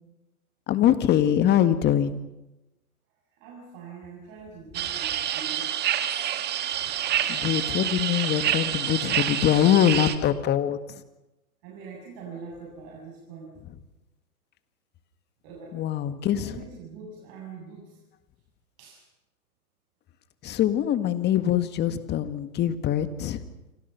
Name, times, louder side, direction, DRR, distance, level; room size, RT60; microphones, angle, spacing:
voice 1, 0.7-2.2 7.3-10.8 15.7-16.5 20.4-23.4, left 10 dB, 25° left, 11 dB, 1.8 m, -23 dB
voice 2, 3.3-5.7 7.1-7.5 11.6-13.6 15.4-15.8 16.4-18.0 18.8-19.1, right 5 dB, 40° right, -3 dB, 8.0 m, -43 dB
sound 1, 4.7-10.2, right 11 dB, 20° right, 1.9 m, -27 dB
29.5 x 25.5 x 5.8 m, 0.98 s
hypercardioid pair, 125°, 45 cm